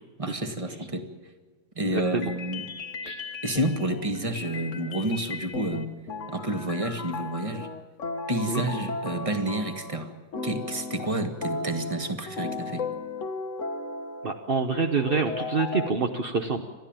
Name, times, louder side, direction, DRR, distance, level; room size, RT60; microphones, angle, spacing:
voice 1, 0.2-1.1 1.7-2.7 3.4-5.9 6.3-7.7 8.3-10.1 10.4-12.9, right 1 dB, 15° right, 7 dB, 1.5 m, -29 dB
sound 1, 1.8-10.1 10.3-15.9, left 3 dB, 45° left, 1.3 m, -36 dB
voice 2, 1.9-2.3 3.0-3.2 8.5-8.6 14.2-16.6, right 4 dB, 40° right, 5 dB, 0.8 m, -26 dB
29.5 x 13.0 x 8.9 m, 1.4 s
omnidirectional pair, 2.2 m